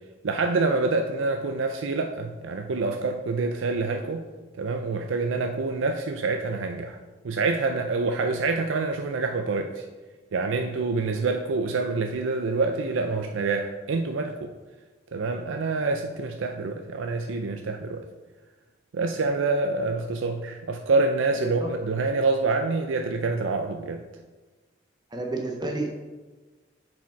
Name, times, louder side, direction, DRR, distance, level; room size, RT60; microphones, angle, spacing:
voice 1, 0.2-4.2 4.6-7.0 7.2-9.8 10.3-14.5 15.1-18.0 18.9-24.0, right 3 dB, 80° right, 5 dB, 0.5 m, -26 dB
voice 2, 21.4-21.7 25.1-25.9, right 2 dB, 20° right, 2 dB, 0.6 m, -30 dB
7.0 x 5.1 x 4.5 m, 1.3 s
head